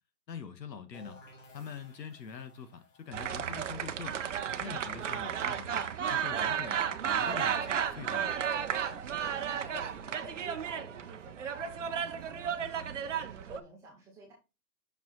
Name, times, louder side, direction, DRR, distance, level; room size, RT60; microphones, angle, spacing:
voice 1, 0.3-1.2 1.5-4.2 4.6-5.8 6.1-8.4, left 6 dB, 80° left, 1.3 m, -44 dB
sound 1, 0.9-6.5, left 2 dB, 50° left, 1.9 m, -59 dB
sound 2, 3.1-13.6, right 8 dB, 50° right, 0.6 m, -33 dB
voice 2, 8.8-14.3, right 1 dB, 5° right, 0.9 m, -50 dB
5.9 x 4.4 x 4.0 m
hypercardioid pair, 160°, 49 cm